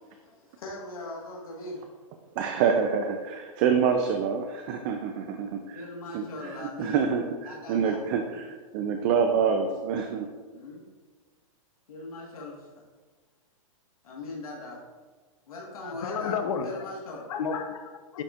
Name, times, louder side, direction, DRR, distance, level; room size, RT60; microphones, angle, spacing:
voice 1, 0.6-1.8 5.7-7.0 7.6-8.0 10.5-10.8 11.9-12.6 14.0-14.8 15.5-16.3 16.6-17.2, left 2 dB, 90° left, -3 dB, 1.5 m, -39 dB
voice 2, 2.4-10.3, right 6 dB, 35° right, 5 dB, 0.4 m, -27 dB
voice 3, 15.8-16.9 17.3-18.2, left 6 dB, 70° left, 7 dB, 0.8 m, -32 dB
9.7 x 4.1 x 2.4 m, 1.4 s
hypercardioid pair, 150°, 18 cm